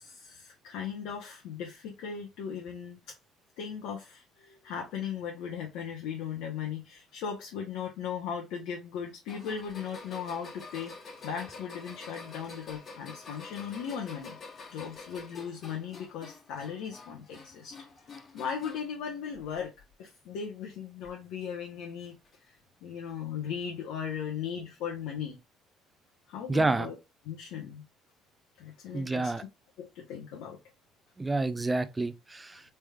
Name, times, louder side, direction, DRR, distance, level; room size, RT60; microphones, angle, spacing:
voice 1, 0.0-3.1 3.6-10.9 11.2-14.4 14.7-17.7 18.3-19.7 20.0-22.1 22.8-25.4 26.3-26.9 27.2-27.8 28.6-29.3 29.8-30.6, left 7 dB, 75° left, 0.8 m, -37 dB
sound 1, 9.3-18.9 19.3-19.9 21.0-21.1 22.3-22.4, left 4 dB, 45° left, 1.1 m, -47 dB
voice 2, 26.5-26.9 28.9-29.4 31.2-32.6, right 2 dB, 20° right, 0.5 m, -29 dB
3.3 x 3.2 x 2.3 m
supercardioid pair, 70°, 0 cm